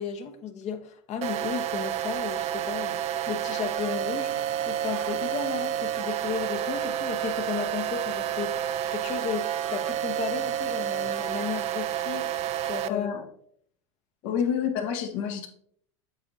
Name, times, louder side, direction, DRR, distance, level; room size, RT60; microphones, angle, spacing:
voice 1, 0.0-3.0 3.3-4.3 4.7-13.1 14.3-14.4, left 7 dB, 45° left, 1.1 m, -34 dB
sound 1, 1.2-12.9, right 11 dB, 45° right, 0.5 m, -30 dB
voice 2, 12.9-13.3 14.2-15.5, left 8 dB, 70° left, 1.6 m, -28 dB
8.2 x 6.5 x 2.8 m
supercardioid pair, 105°, 16 cm